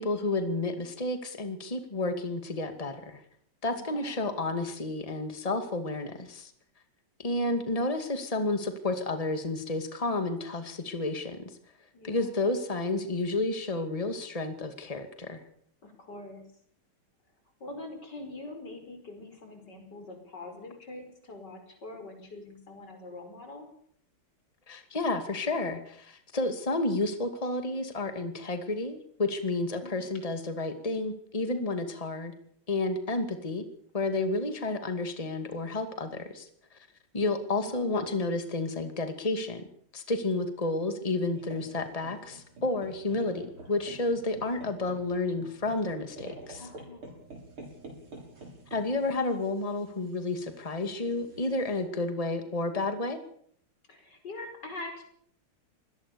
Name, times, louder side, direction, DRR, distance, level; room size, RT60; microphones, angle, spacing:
voice 1, 0.0-3.2 3.6-6.5 7.2-11.4 12.0-15.4 24.7-32.3 32.7-33.6 33.9-36.5 37.1-39.7 39.9-46.6 48.7-53.2, left 2 dB, 15° left, 8 dB, 2.4 m, -31 dB
voice 2, 3.7-4.4 11.9-12.5 15.8-16.4 17.6-23.7 29.8-30.1 37.6-38.1 46.6-47.2 53.9-55.0, left 2 dB, 50° left, 5 dB, 5.9 m, -44 dB
sound 1, 41.4-51.8, right 2 dB, 80° right, 7.7 m, -48 dB
24.0 x 18.5 x 7.0 m, 0.63 s
omnidirectional pair, 2.3 m